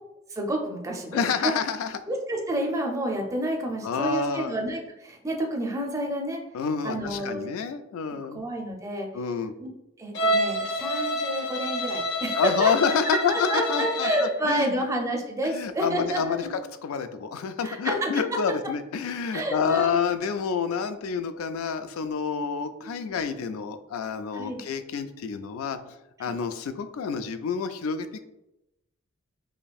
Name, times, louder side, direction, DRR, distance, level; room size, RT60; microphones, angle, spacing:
voice 1, 0.3-1.5 2.1-6.4 6.8-7.4 8.3-9.1 9.6-9.7 10.0-16.5 17.6-18.1 19.3-20.0 22.8-23.0 24.3-24.6 26.2-26.3, right 1 dB, 15° right, 1 dB, 0.5 m, -29 dB
voice 2, 1.1-1.9 3.8-4.5 6.5-8.4 9.1-9.5 12.4-14.1 14.4-14.8 15.4-28.3, left 6 dB, 90° left, 10 dB, 0.3 m, -28 dB
Bowed string instrument, 10.1-14.4, equal, 55° left, 0.8 m, -28 dB
5.0 x 2.6 x 2.3 m, 0.89 s
head